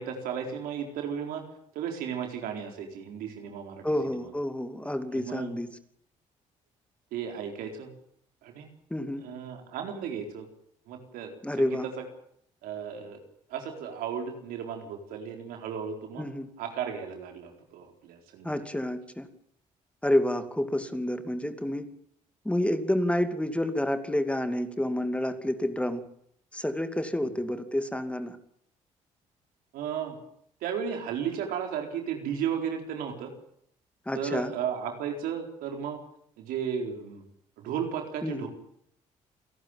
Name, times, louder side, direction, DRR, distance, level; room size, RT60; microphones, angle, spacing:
voice 1, 0.0-1.4 1.7-4.3 5.1-5.5 7.1-7.9 8.4-8.7 9.2-10.5 10.9-12.0 12.6-13.2 13.5-16.3 16.6-18.5 27.2-27.3 29.7-30.2 30.6-33.3 34.1-36.0 36.4-37.2 37.6-38.5, right 7 dB, 80° right, 4 dB, 4.2 m, -34 dB
voice 2, 3.8-5.7 8.9-9.2 11.4-11.8 16.2-16.5 18.4-19.3 20.0-21.9 22.4-26.0 26.5-28.4 34.1-34.5 38.2-38.5, left 1 dB, 10° left, 9 dB, 2.6 m, -29 dB
28.5 x 12.0 x 9.1 m, 0.69 s
supercardioid pair, 65°, 15 cm